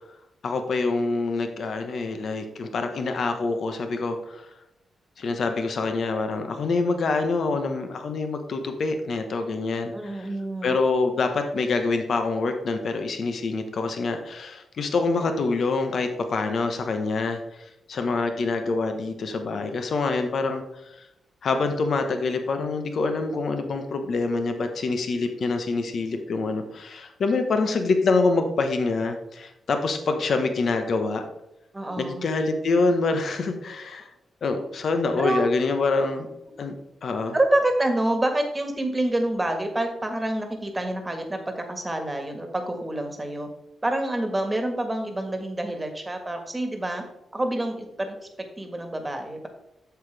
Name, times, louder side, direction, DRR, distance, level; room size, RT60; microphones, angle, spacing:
voice 1, 0.4-4.5 5.2-10.3 10.6-21.0 21.4-31.2 32.0-34.1 34.4-36.3 36.6-36.8 37.0-37.4, left 3 dB, 65° left, 6 dB, 1.1 m, -26 dB
voice 2, 9.9-10.8 31.7-32.3 35.2-35.4 37.3-43.5 43.8-47.0 47.3-48.2 48.6-49.5, right 1 dB, 20° right, 5 dB, 1.6 m, -27 dB
8.0 x 7.0 x 3.4 m, 0.87 s
cardioid pair, 85°, 0 cm